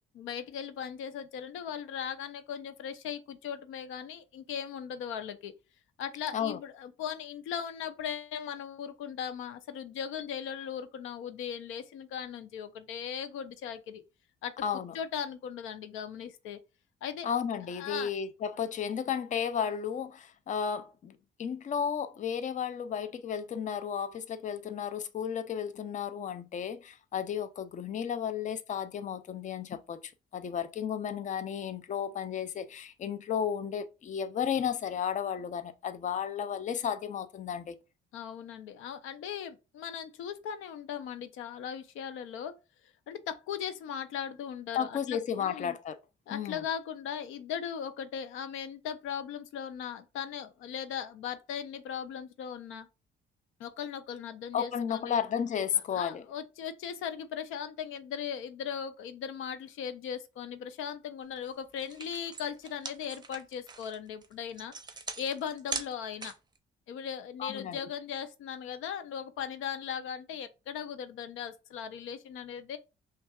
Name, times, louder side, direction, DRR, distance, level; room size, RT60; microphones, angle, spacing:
voice 1, 0.1-5.5 6.0-14.0 14.4-14.5 14.9-16.6 17.0-17.3 17.7-18.1 38.1-42.5 43.1-45.8 46.3-52.9 53.6-55.2 55.9-64.7 65.2-66.3 66.9-72.8, left 8 dB, 90° left, 0.5 m, -38 dB
voice 2, 14.6-15.0 17.2-37.8 44.7-46.0 46.3-46.6 54.5-56.2 67.4-67.8, left 8 dB, 40° left, 0.4 m, -33 dB
sound 1, 61.4-61.5 61.8-66.6, right 4 dB, 20° right, 0.6 m, -41 dB
5.5 x 2.3 x 2.3 m
cardioid pair, 90°, 20 cm